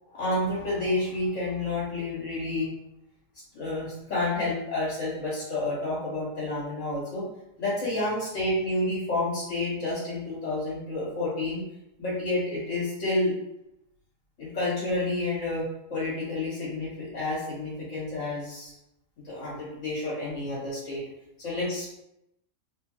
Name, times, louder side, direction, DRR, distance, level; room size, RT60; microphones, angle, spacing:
voice 1, 0.1-2.7 3.5-7.2 7.6-11.6 12.0-13.3 14.4-15.6 15.9-18.7 19.2-21.0 21.4-21.9, left 2 dB, 65° left, -8 dB, 1.7 m, -29 dB
3.4 x 2.5 x 3.0 m, 0.85 s
omnidirectional pair, 1.4 m